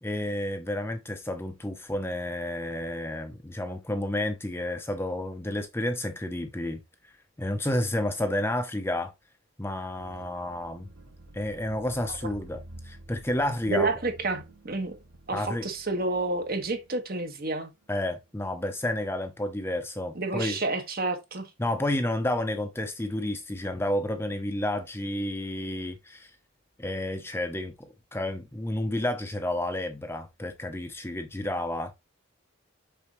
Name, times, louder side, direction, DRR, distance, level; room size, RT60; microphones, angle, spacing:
voice 1, 0.0-7.1 7.4-9.1 9.6-10.9 11.3-13.9 15.3-15.6 17.9-20.6 21.6-26.3 26.8-31.9, left 1 dB, 10° left, 0.7 m, -31 dB
sound 1, 10.0-19.2 19.5-19.6, right 1 dB, 85° right, 1.4 m, -50 dB
voice 2, 13.7-15.0 15.3-17.7 20.1-21.5, right 3 dB, 45° right, 1.6 m, -29 dB
6.9 x 5.6 x 3.1 m
head